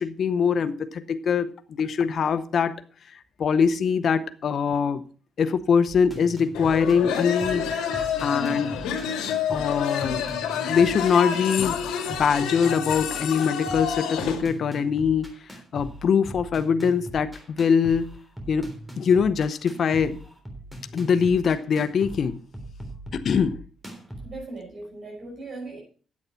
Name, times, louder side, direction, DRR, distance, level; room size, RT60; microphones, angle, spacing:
voice 1, 0.0-1.5 1.8-2.8 3.1-5.0 5.4-7.7 8.0-8.9 9.5-10.2 10.7-11.8 12.1-15.3 15.7-18.1 18.5-18.7 19.0-20.2 20.9-22.4 23.1-23.6, left 6 dB, 55° left, 10 dB, 0.8 m, -23 dB
sound 1, 5.9-24.4, right 1 dB, 5° right, 3.5 m, -40 dB
sound 2, 6.5-14.4, left 8 dB, 90° left, 2.1 m, -28 dB
voice 2, 24.2-25.8, right 2 dB, 45° right, -1 dB, 6.0 m, -38 dB
9.7 x 8.2 x 5.6 m, 0.40 s
cardioid pair, 90°, 0 cm